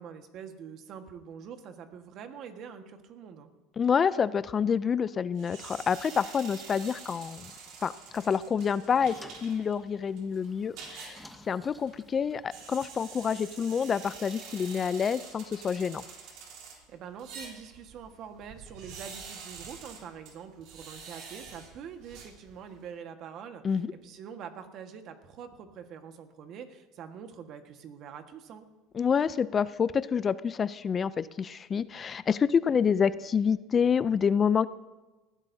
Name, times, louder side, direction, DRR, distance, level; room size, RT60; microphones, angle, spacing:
voice 1, 0.0-3.5 16.9-28.7, right 7 dB, 50° right, 7 dB, 1.5 m, -45 dB
voice 2, 3.8-7.5 7.8-16.0 23.6-23.9 28.9-34.7, left 6 dB, 30° left, 16 dB, 0.4 m, -28 dB
sound 1, 5.4-22.9, right 5 dB, 65° right, 3.4 m, -47 dB
sound 2, 8.5-13.2, left 1 dB, 5° left, 0.9 m, -54 dB
19.0 x 15.0 x 2.7 m, 1.2 s
supercardioid pair, 125°, 0 cm